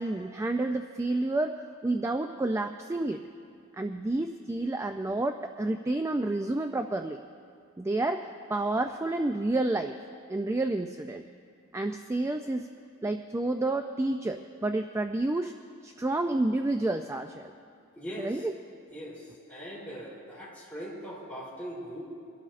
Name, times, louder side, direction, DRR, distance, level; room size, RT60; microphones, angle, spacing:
voice 1, 0.0-1.6 1.8-3.2 3.8-7.2 7.8-9.9 10.3-11.2 11.7-12.7 13.0-15.5 15.8-17.5 18.2-18.5, right 2 dB, 10° right, 6 dB, 0.3 m, -29 dB
voice 2, 17.9-18.5 18.9-22.0, equal, 5° left, -7 dB, 3.4 m, -40 dB
24.5 x 12.0 x 2.5 m, 2.4 s
head